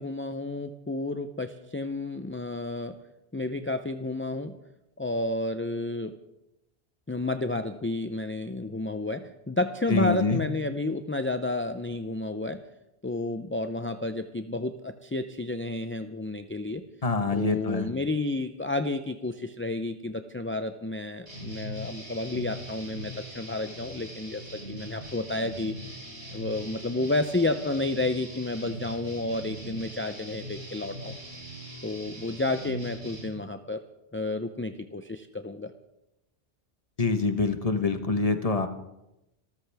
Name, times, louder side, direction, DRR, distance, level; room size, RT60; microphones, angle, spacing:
voice 1, 0.0-3.0 3.3-4.6 5.0-6.2 7.1-12.6 13.0-16.8 17.3-25.7 26.3-31.1 31.8-33.8 34.1-35.7, left 2 dB, 15° left, 7 dB, 0.4 m, -31 dB
voice 2, 9.9-10.4 17.0-17.9 37.0-38.7, left 3 dB, 35° left, 7 dB, 1.2 m, -25 dB
sound 1, 21.3-33.3, equal, 80° right, 4.8 m, -41 dB
26.5 x 14.0 x 3.5 m, 0.91 s
omnidirectional pair, 1.1 m